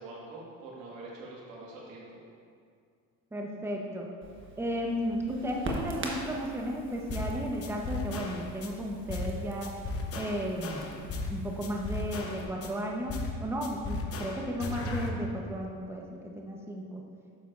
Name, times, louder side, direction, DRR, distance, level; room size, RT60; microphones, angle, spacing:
voice 1, 0.0-2.2, right 2 dB, 90° right, -4 dB, 1.9 m, -45 dB
voice 2, 3.3-4.1 4.6-9.7 10.1-10.9 11.3-17.0, equal, 5° right, 0 dB, 0.9 m, -34 dB
Crackle, 4.2-12.4, right 2 dB, 30° right, 1.3 m, -43 dB
sound 1, 7.1-7.3 7.6-8.7 9.1-9.3 9.6-11.3 11.6-12.7 13.1-13.4 13.6-15.1, left 3 dB, 35° left, 0.9 m, -35 dB
9.5 x 6.9 x 2.5 m, 2.2 s
supercardioid pair, 90°, 38 cm